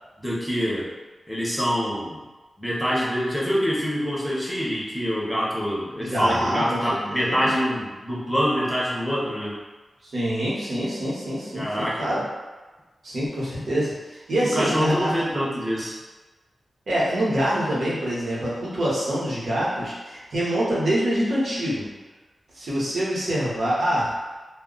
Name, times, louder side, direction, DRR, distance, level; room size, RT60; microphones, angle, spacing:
voice 1, 0.2-0.9 1.3-2.2 2.6-9.6 11.6-12.0 14.5-16.0, equal, 5° left, -5 dB, 0.8 m, -25 dB
voice 2, 6.0-7.5 10.0-12.2 13.0-15.1 16.9-21.9 22.5-24.1, equal, 70° right, -7 dB, 0.9 m, -25 dB
2.2 x 2.1 x 3.7 m, 1.2 s
wide cardioid pair, 75°, 0 cm